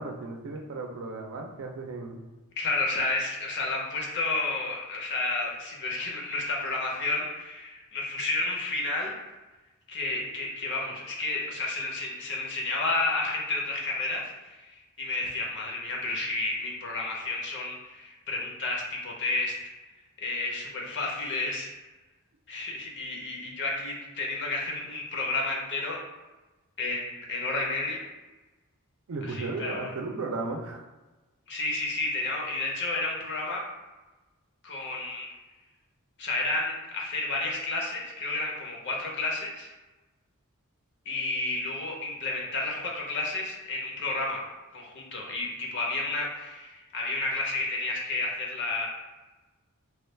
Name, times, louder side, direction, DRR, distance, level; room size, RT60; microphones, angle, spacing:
voice 1, 0.0-2.2 29.1-30.8, right 3 dB, 65° right, 2 dB, 0.5 m, -35 dB
voice 2, 2.6-9.2 9.9-19.6 20.2-21.7 22.5-26.0 26.8-28.0 29.2-29.9 31.5-33.6 34.6-35.3 36.2-39.7 41.1-44.4 44.7-48.9, left 2 dB, 55° left, -1 dB, 0.7 m, -31 dB
3.2 x 2.3 x 3.2 m, 1.1 s
head